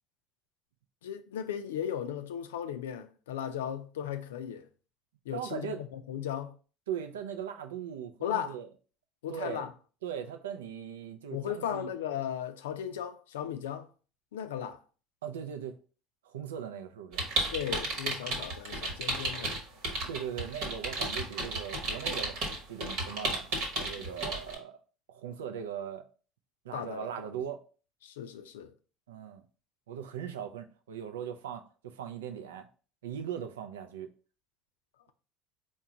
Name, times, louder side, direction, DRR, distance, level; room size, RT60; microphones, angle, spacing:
voice 1, 1.0-4.7 5.3-6.5 8.2-8.6 9.2-9.7 11.3-13.9 14.3-14.8 17.5-19.6 26.7-27.3 28.0-28.7, left 9 dB, 80° left, 0.4 m, -36 dB
voice 2, 5.3-5.8 6.9-8.7 9.3-9.7 10.0-11.9 15.2-15.7 16.2-17.3 20.1-22.4 22.7-23.5 23.7-24.8 25.1-26.0 26.6-27.6 29.1-29.4 29.9-32.7 33.0-34.1, right 8 dB, 80° right, 0.4 m, -39 dB
sound 1, 17.1-24.5, right 2 dB, 65° right, 1.2 m, -33 dB
4.5 x 2.2 x 3.7 m
hypercardioid pair, 65°, 0 cm